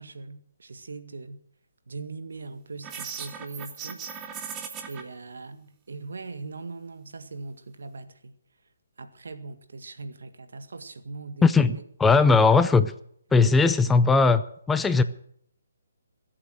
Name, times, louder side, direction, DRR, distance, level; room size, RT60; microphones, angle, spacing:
voice 1, 0.0-1.4 1.9-4.1 4.9-8.3 9.0-11.8 12.3-12.4 13.6-13.7, right 3 dB, 80° right, 1.8 m, -40 dB
sound 1, 2.8-5.0, right 7 dB, 15° right, 1.6 m, -38 dB
voice 2, 11.4-11.7 12.0-12.9 13.3-14.4 14.7-15.0, left 4 dB, 5° left, 0.6 m, -18 dB
21.5 x 8.6 x 6.4 m
hypercardioid pair, 155°, 0 cm